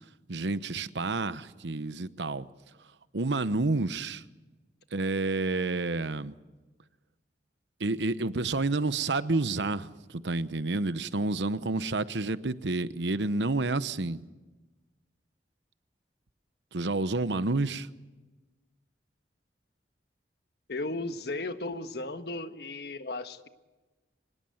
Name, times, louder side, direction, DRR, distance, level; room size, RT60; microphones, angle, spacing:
voice 1, 0.3-2.5 3.1-4.2 4.9-6.3 7.8-14.2 16.7-17.9, right 3 dB, 90° right, 1.0 m, -29 dB
voice 2, 20.7-23.5, left 2 dB, 65° left, 1.4 m, -35 dB
25.0 x 20.0 x 7.9 m
head